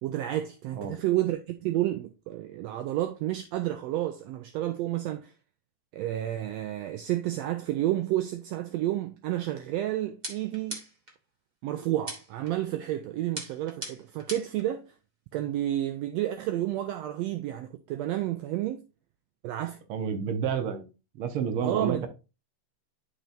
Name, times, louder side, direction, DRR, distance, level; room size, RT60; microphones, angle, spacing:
voice 1, 0.0-5.3 5.9-10.8 11.6-14.8 15.3-18.8 19.4-19.8 21.6-22.1, right 13 dB, 80° right, 1.6 m, -30 dB
sound 1, 10.2-11.2 12.1-12.5 13.4-14.6, right 1 dB, 25° right, 1.0 m, -39 dB
voice 2, 19.9-20.8 21.2-22.1, right 7 dB, 60° right, 1.6 m, -29 dB
11.0 x 4.4 x 2.6 m
omnidirectional pair, 3.3 m